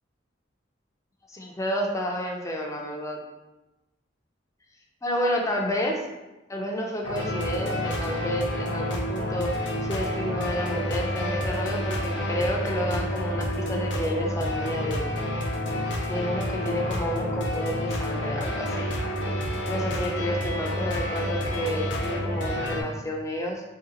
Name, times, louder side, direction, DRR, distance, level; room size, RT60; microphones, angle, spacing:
voice 1, 1.3-3.2 5.0-6.0 6.5-9.5 9.9-15.1 16.1-18.9 19.7-23.6, equal, 15° left, 0 dB, 0.4 m, -30 dB
sound 1, 7.0-22.8, equal, 70° left, 0.6 m, -29 dB
3.1 x 2.8 x 3.8 m, 1.0 s
head